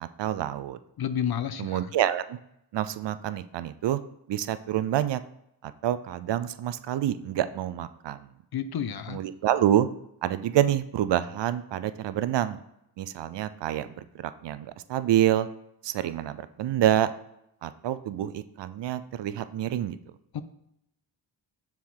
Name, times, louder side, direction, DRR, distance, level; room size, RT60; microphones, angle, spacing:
voice 1, 0.0-0.8 1.6-2.4 2.7-4.0 4.3-5.2 5.6-8.2 9.1-9.9 10.2-12.6 13.0-13.9 14.1-15.5 15.8-17.1 17.6-20.0, right 11 dB, 60° right, 13 dB, 0.5 m, -27 dB
voice 2, 1.0-1.9 8.5-9.2 20.3-20.4, left 8 dB, 50° left, 12 dB, 0.6 m, -30 dB
6.1 x 4.4 x 3.7 m, 0.79 s
supercardioid pair, 45°, 48 cm